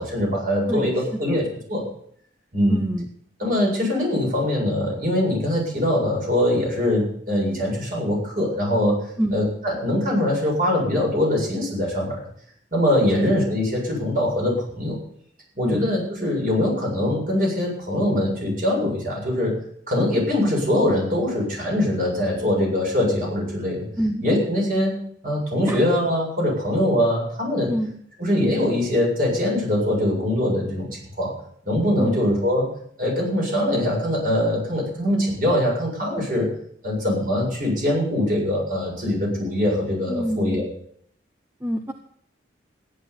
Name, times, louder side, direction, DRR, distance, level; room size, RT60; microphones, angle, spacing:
voice 1, 0.0-1.8 2.5-2.8 3.4-9.0 9.3-12.2 12.7-15.0 15.6-19.5 19.9-23.9 24.2-25.0 25.2-27.7 28.2-31.3 31.6-32.7 33.0-36.5 36.8-40.7, left 1 dB, 45° right, -1 dB, 7.6 m, -22 dB
voice 2, 0.7-1.4 2.7-3.1 9.2-9.4 13.1-13.3 15.6-15.8 24.0-24.2 25.7-25.8 27.7-28.0 32.0-32.3 40.1-40.7 41.6-41.9, right 1 dB, 10° right, 4 dB, 0.8 m, -26 dB
14.5 x 11.0 x 7.2 m, 0.65 s
head